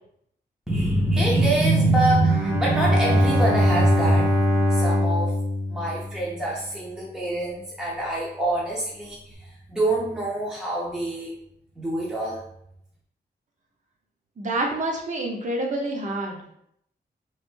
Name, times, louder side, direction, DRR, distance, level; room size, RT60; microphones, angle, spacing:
voice 1, 0.7-5.3 5.7-11.3 11.8-12.4, right 2 dB, 5° right, -5 dB, 0.6 m, -24 dB
Bowed string instrument, 2.2-6.6, left 1 dB, 85° right, 1.4 m, -22 dB
voice 2, 14.4-16.4, right 1 dB, 45° right, 0 dB, 0.8 m, -27 dB
3.3 x 2.5 x 4.4 m, 0.74 s
wide cardioid pair, 160°, 17 cm